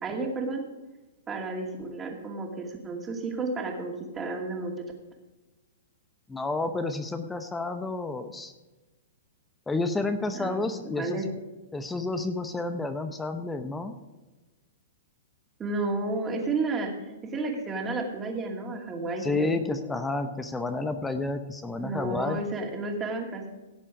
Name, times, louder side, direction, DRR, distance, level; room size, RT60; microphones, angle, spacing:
voice 1, 0.0-0.6 1.3-4.7 10.3-10.6 11.0-11.2 15.6-19.5 21.8-23.5, right 3 dB, 15° right, 1 dB, 2.4 m, -32 dB
voice 2, 6.3-8.5 9.7-11.2 11.7-14.0 19.2-22.4, left 3 dB, 10° left, 9 dB, 0.8 m, -30 dB
17.0 x 7.4 x 4.9 m, 1.2 s
hypercardioid pair, 145°, 0 cm